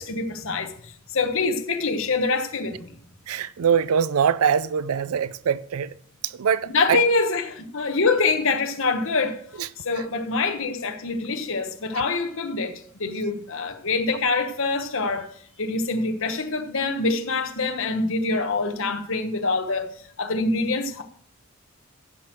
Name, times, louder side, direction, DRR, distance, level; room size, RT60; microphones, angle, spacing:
voice 1, 0.0-2.9 6.7-15.3 15.6-19.9 20.2-21.0, left 3 dB, 65° left, 1.2 m, -25 dB
voice 2, 3.3-5.9 6.2-7.0 9.6-9.7 10.0-10.2, right 7 dB, 85° right, 0.4 m, -23 dB
15.0 x 6.1 x 4.6 m
head